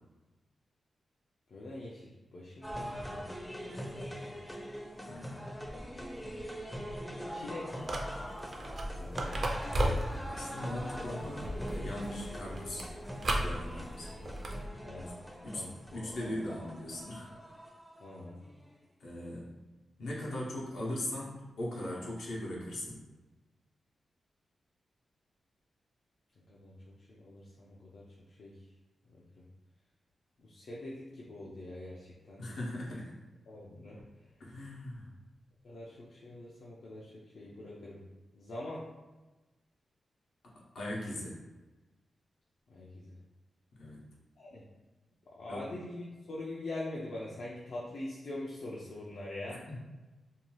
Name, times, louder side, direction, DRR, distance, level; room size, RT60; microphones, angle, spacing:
voice 1, 1.5-3.3 3.6-4.3 7.3-7.8 8.7-9.5 14.2-14.3 14.8-15.2 15.5-16.5 18.0-18.4 26.4-26.7 27.0-28.7 30.4-32.4 33.5-34.0 35.6-38.0 38.3-38.8 42.7-43.1 44.4-44.6 45.3-49.6, left 2 dB, 70° left, -6 dB, 0.4 m, -44 dB
sound 1, 2.6-18.7, equal, 10° left, 0.4 m, -43 dB
voice 2, 5.0-5.4 10.3-12.9 13.4-14.1 15.0-15.1 15.4-15.7 15.9-17.3 19.0-19.6 20.0-23.0 32.4-33.1 34.4-35.1 40.4-41.4 43.8-44.0 45.5-45.6 49.5-49.8, left 1 dB, 90° left, -5 dB, 0.8 m, -39 dB
sound 2, 7.8-14.7, right 1 dB, 50° right, 0.4 m, -36 dB
2.7 x 2.2 x 3.0 m, 1.1 s
cardioid pair, 95°, 0 cm